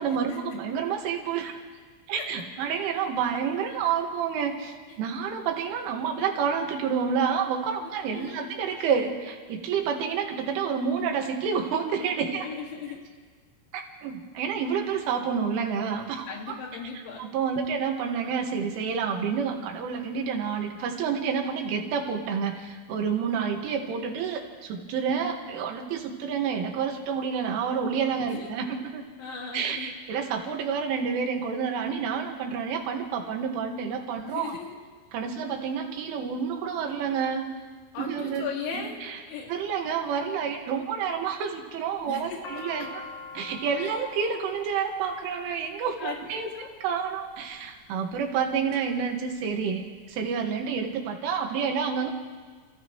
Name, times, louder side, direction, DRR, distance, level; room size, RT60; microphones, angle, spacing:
voice 1, 0.0-1.6 2.1-12.5 13.7-16.6 17.2-29.0 29.5-34.6 35.1-37.5 38.0-38.5 38.7-39.2 39.5-43.0 43.3-52.1, right 6 dB, 80° right, 2 dB, 4.3 m, -29 dB
voice 2, 7.8-8.5 12.3-13.0 16.3-17.2 17.6-17.9 25.2-25.3 28.3-28.5 29.2-29.9 34.2-34.8 37.9-39.0 39.3-39.5 42.1-42.4 43.8-44.0 46.0-46.2 46.5-46.7, left 6 dB, 75° left, 0 dB, 4.6 m, -37 dB
sound 1, 42.0-46.2 47.1-47.5 48.1-48.8 49.1-49.2 49.4-50.2, left 4 dB, 60° left, 2.6 m, -43 dB
29.0 x 28.5 x 3.2 m, 1.5 s
omnidirectional pair, 5.6 m